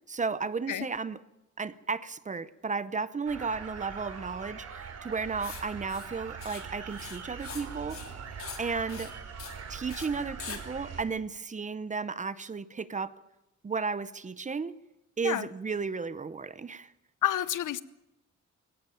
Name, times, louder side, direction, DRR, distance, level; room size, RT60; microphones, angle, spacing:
voice 1, 0.1-1.2 1.6-8.0 8.6-9.1 9.7-13.1 13.6-14.7 15.2-16.9, right 5 dB, 25° right, 16 dB, 0.7 m, -34 dB
sound 1, 3.2-11.0, right 6 dB, 55° right, 3.4 m, -42 dB
Writing, 5.4-5.6 5.9-6.1 6.4-6.6 6.9-7.6 7.9-8.1 8.4-8.6 8.9-9.1 9.4-9.6 9.9-10.1 10.4-10.6, left 6 dB, 45° left, 2.9 m, -42 dB
voice 2, 17.2-17.8, left 12 dB, 80° left, 17 dB, 1.0 m, -29 dB
21.0 x 17.5 x 9.1 m, 0.93 s
wide cardioid pair, 175°, 30 cm